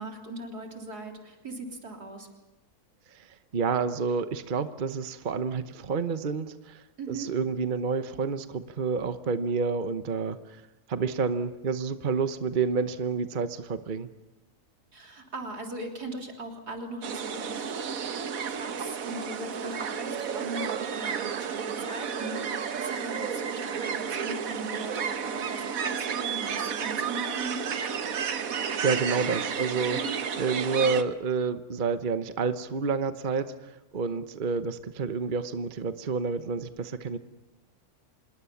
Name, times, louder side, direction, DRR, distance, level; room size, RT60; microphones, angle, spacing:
voice 1, 0.0-2.3 7.0-7.3 14.9-17.7 18.5-27.8 29.9-30.2, right 2 dB, 80° right, 2 dB, 4.1 m, -39 dB
voice 2, 3.5-10.4 10.9-14.1 28.8-30.0 30.4-37.2, right 5 dB, 35° right, 10 dB, 0.9 m, -29 dB
sound 1, 17.0-31.0, right 7 dB, 65° right, 1.5 m, -32 dB
26.5 x 21.5 x 7.1 m, 1.0 s
omnidirectional pair, 1.7 m